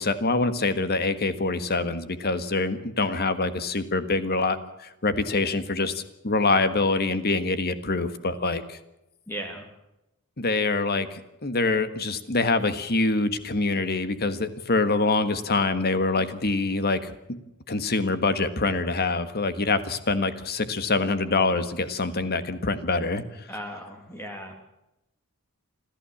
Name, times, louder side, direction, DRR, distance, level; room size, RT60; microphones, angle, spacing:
voice 1, 0.0-8.8 10.4-17.4 17.7-23.2, left 3 dB, 45° left, 11 dB, 1.6 m, -25 dB
voice 2, 9.3-9.6 23.5-24.5, equal, 10° left, 4 dB, 2.6 m, -36 dB
26.5 x 14.0 x 7.2 m, 0.90 s
head